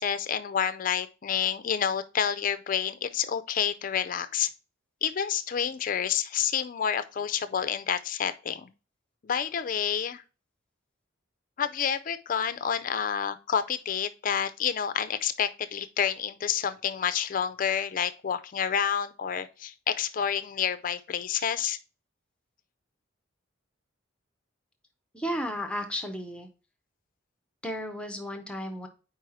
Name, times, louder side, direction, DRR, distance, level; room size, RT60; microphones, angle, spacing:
voice 1, 0.0-4.5 5.0-8.7 9.2-10.2 11.6-21.8, left 8 dB, 45° left, 0.4 m, -29 dB
voice 2, 25.1-26.5 27.6-28.9, equal, 5° left, 0.7 m, -33 dB
4.7 x 4.5 x 4.7 m
head